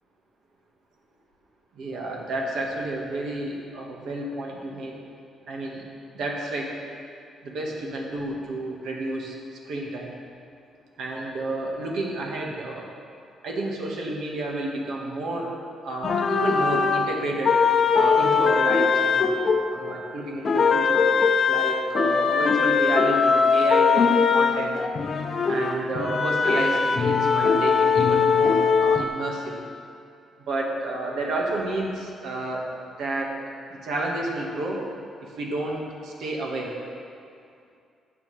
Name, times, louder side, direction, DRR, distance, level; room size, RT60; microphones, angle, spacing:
voice 1, 1.7-5.0 5.5-5.8 6.1-6.8 7.4-10.1 11.0-12.9 13.4-15.5 15.8-17.6 17.9-19.3 19.7-21.1 21.4-24.8 25.5-29.6 30.5-32.7 33.0-33.4 33.7-34.8 35.2-36.7, right 2 dB, 75° right, -1 dB, 1.6 m, -31 dB
sound 1, 16.0-20.1 20.4-29.0, left 5 dB, 45° left, 0.7 m, -21 dB
13.5 x 7.6 x 3.4 m, 2.4 s
cardioid pair, 90°, 0 cm